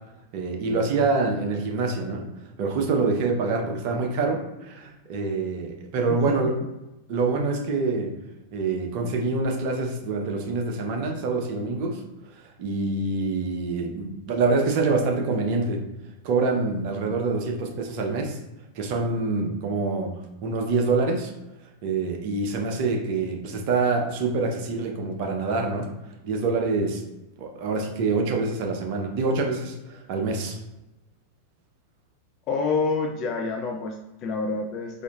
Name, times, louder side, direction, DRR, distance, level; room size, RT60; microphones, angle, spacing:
voice 1, 0.3-2.3 2.6-6.6 7.1-8.1 8.5-12.0 12.3-15.8 16.2-18.4 18.7-20.1 20.4-21.3 21.8-25.9 26.2-27.0 27.4-30.6, right 3 dB, 45° right, 2 dB, 0.6 m, -26 dB
voice 2, 32.5-35.0, left 4 dB, 35° left, 2 dB, 0.4 m, -28 dB
4.4 x 2.5 x 2.3 m, 0.98 s
figure-of-eight pair, 90°, 0 cm